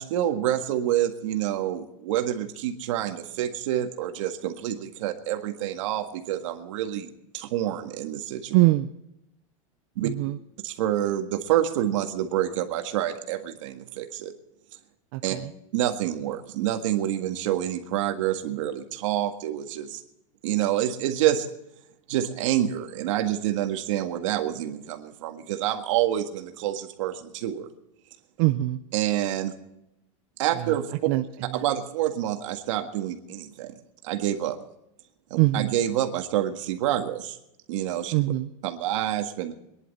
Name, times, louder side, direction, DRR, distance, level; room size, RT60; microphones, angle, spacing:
voice 1, 0.0-8.6 10.0-10.1 10.6-14.3 15.2-15.4 15.7-20.0 20.4-21.5 22.1-27.7 28.9-29.6 30.4-30.9 31.5-33.7 34.0-34.6 35.3-37.4 37.7-38.1 38.6-39.5, right 12 dB, 65° right, 5 dB, 1.7 m, -27 dB
voice 2, 8.5-8.9 10.0-10.4 15.1-15.4 28.4-28.8 31.1-31.2 31.6-31.7 35.4-35.7 38.1-38.5, right 18 dB, 40° right, 8 dB, 0.5 m, -22 dB
25.0 x 11.0 x 4.2 m, 0.83 s
supercardioid pair, 180°, 18 cm